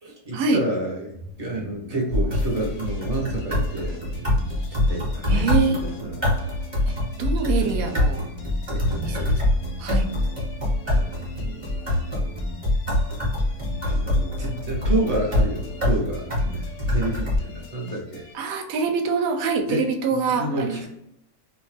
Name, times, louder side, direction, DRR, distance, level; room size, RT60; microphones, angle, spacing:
voice 1, 0.0-6.4 7.6-7.7 8.7-9.3 10.8-11.8 13.8-16.6 16.9-18.3 19.7-20.9, right 1 dB, 35° right, -2 dB, 0.6 m, -30 dB
sound 1, 1.1-17.1, right 2 dB, 85° right, 1.2 m, -43 dB
sound 2, 2.1-17.4, left 1 dB, 20° right, 1.0 m, -24 dB
sound 3, 2.4-18.3, left 3 dB, 70° left, 0.7 m, -44 dB
voice 2, 5.3-5.9 6.9-8.2 8.9-9.4 9.8-10.1 18.3-20.8, right 5 dB, 70° right, 5 dB, 0.9 m, -25 dB
2.8 x 2.2 x 3.2 m, 0.79 s
omnidirectional pair, 1.8 m